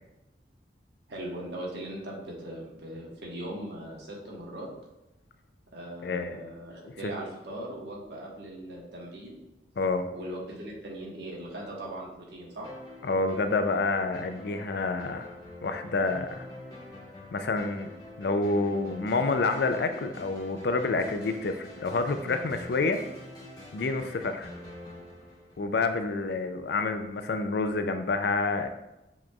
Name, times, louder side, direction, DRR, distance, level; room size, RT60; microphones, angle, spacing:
voice 1, 1.1-4.7 5.7-9.4 10.1-12.7, right 1 dB, 75° right, -3 dB, 1.2 m, -39 dB
voice 2, 6.0-6.4 9.8-10.1 13.0-15.3 15.6-16.5 17.3-17.9 18.2-23.0 23.7-24.5 25.6-28.7, left 3 dB, 70° left, 7 dB, 0.4 m, -28 dB
sound 1, 12.6-26.2, left 1 dB, 25° left, 1.1 m, -46 dB
7.1 x 3.0 x 2.3 m, 0.93 s
head